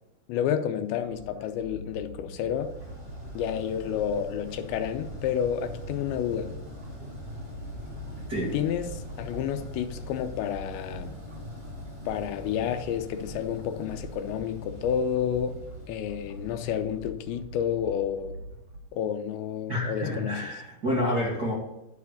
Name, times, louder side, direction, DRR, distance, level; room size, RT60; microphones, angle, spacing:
voice 1, 0.3-2.7 3.3-6.5 8.5-11.1 12.1-15.6 15.9-18.4 18.9-20.4, left 9 dB, 80° left, 8 dB, 2.8 m, -30 dB
sound 1, 1.0-18.8, equal, 85° right, 1.0 m, -45 dB
sound 2, 2.5-17.6, equal, 20° right, 2.2 m, -43 dB
voice 2, 19.7-21.5, left 1 dB, 50° right, -6 dB, 1.1 m, -28 dB
11.5 x 4.8 x 8.1 m, 0.90 s
omnidirectional pair, 5.5 m